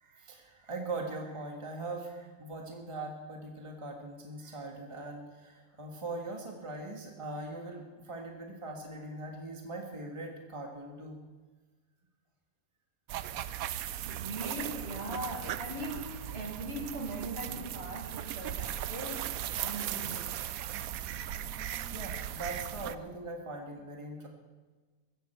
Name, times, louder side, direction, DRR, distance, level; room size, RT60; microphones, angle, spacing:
voice 1, 0.0-11.2 16.3-16.5 21.1-21.4 21.6-24.3, right 2 dB, 20° right, 1 dB, 1.7 m, -41 dB
sound 1, 13.1-22.9, right 11 dB, 80° right, 1.1 m, -38 dB
voice 2, 14.0-20.3, right 1 dB, 45° right, 2 dB, 2.1 m, -40 dB
16.0 x 15.0 x 4.5 m, 1.3 s
omnidirectional pair, 1.5 m